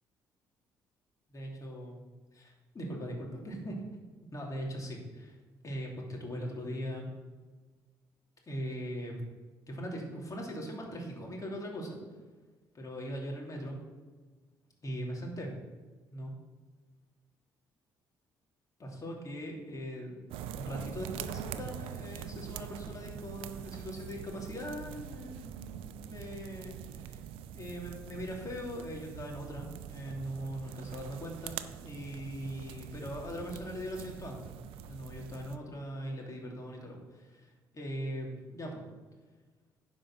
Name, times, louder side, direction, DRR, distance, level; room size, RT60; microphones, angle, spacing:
voice 1, 1.3-2.0 2.3-3.8 4.3-5.4 5.6-7.1 8.4-9.2 9.7-12.0 12.7-13.8 14.8-15.5 16.1-16.3 18.8-20.2 20.5-27.2 27.5-31.6 31.8-34.5 34.9-38.8, equal, 35° left, -1 dB, 3.3 m, -40 dB
sound 1, 20.3-35.6, right 9 dB, 75° right, 0.5 m, -44 dB
10.5 x 5.2 x 6.1 m, 1.4 s
hypercardioid pair, 55°, 9 cm